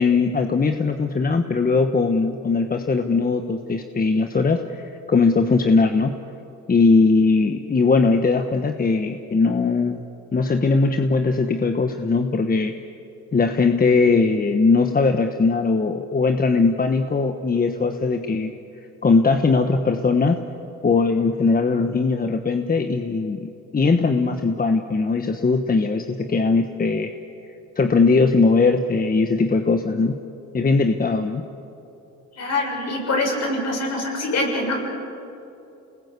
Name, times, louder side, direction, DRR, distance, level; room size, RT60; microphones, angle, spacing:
voice 1, 0.0-6.2 6.7-10.0 10.3-12.8 13.3-18.5 19.0-20.4 20.8-27.1 27.8-30.2 30.5-31.4, left 4 dB, 30° left, 6 dB, 1.2 m, -20 dB
voice 2, 32.3-34.8, left 2 dB, 60° left, 0 dB, 7.1 m, -24 dB
28.5 x 20.0 x 8.2 m, 2.9 s
cardioid pair, 90°, 30 cm